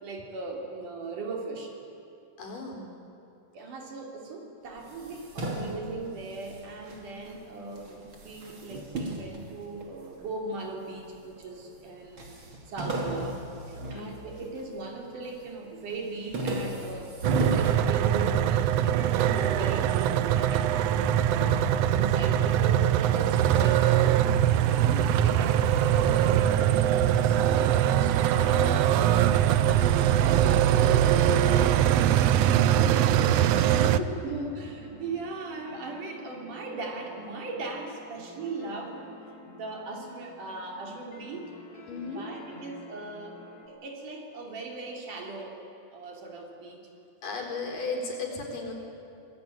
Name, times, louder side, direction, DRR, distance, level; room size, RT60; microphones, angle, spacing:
voice 1, 0.0-1.8 3.5-12.3 12.7-20.7 21.2-24.0 24.7-33.9 34.2-39.1 39.6-41.5 42.1-43.4 43.7-45.6 45.9-46.8, right 3 dB, 70° right, 1 dB, 4.5 m, -38 dB
voice 2, 2.4-2.9 13.9-14.1 21.0-21.1 24.7-25.1 33.6-34.2 41.9-42.2 47.2-48.7, left 4 dB, 75° left, 1 dB, 5.7 m, -35 dB
sound 1, 4.8-7.4 7.7-10.3 10.9-11.5 11.8-11.9 12.2-14.8 15.2-15.6 15.9-18.5, right 1 dB, 40° right, 3.3 m, -34 dB
sound 2, 17.2-34.0, right 10 dB, 85° right, 1.4 m, -22 dB
sound 3, 34.1-43.7, left 1 dB, 60° left, 5.0 m, -50 dB
26.0 x 20.0 x 9.3 m, 2.8 s
omnidirectional pair, 3.8 m